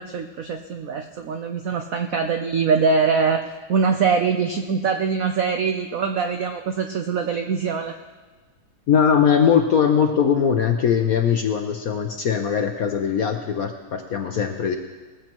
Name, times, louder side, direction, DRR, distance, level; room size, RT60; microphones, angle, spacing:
voice 1, 0.0-3.4 3.7-8.0, right 5 dB, 90° right, 5 dB, 0.7 m, -23 dB
voice 2, 8.9-14.8, left 7 dB, 65° left, 4 dB, 0.9 m, -20 dB
20.0 x 14.5 x 3.0 m, 1.3 s
omnidirectional pair, 2.3 m